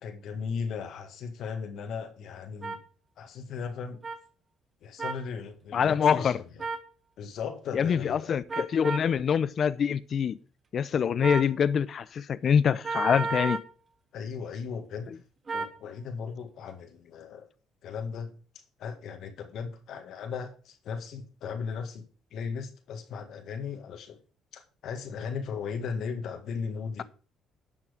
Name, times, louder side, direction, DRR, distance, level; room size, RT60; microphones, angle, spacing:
voice 1, 0.0-2.8 3.2-4.0 4.8-6.6 7.2-8.3 14.1-15.2 15.5-17.5 17.8-22.0 22.3-24.2 24.5-27.0, left 6 dB, 70° left, 1.8 m, -37 dB
sound 1, 2.6-2.8 4.0-4.2 5.0-5.2 6.6-6.9 8.5-9.1 11.2-11.5 12.8-13.7 15.5-15.8, right 4 dB, 35° right, 1.4 m, -32 dB
voice 2, 5.7-6.4 7.7-10.4 10.7-13.6, left 7 dB, 50° left, 0.7 m, -25 dB
11.0 x 6.1 x 5.1 m
cardioid pair, 85°, 0 cm